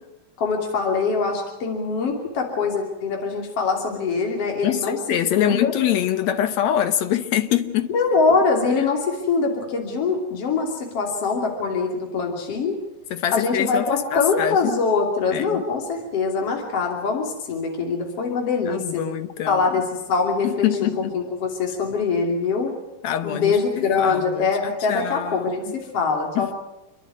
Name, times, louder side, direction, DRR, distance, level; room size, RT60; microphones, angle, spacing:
voice 1, 0.4-5.0 5.4-5.7 7.9-12.8 13.3-19.0 19.5-19.8 20.1-22.7 23.2-26.5, left 4 dB, 45° left, 3.7 m, -23 dB
voice 2, 4.6-7.9 13.1-14.6 15.3-15.6 18.7-19.7 20.4-21.1 23.0-25.7 26.4-26.5, left 11 dB, 65° left, 1.9 m, -24 dB
28.5 x 11.5 x 9.6 m
omnidirectional pair, 3.9 m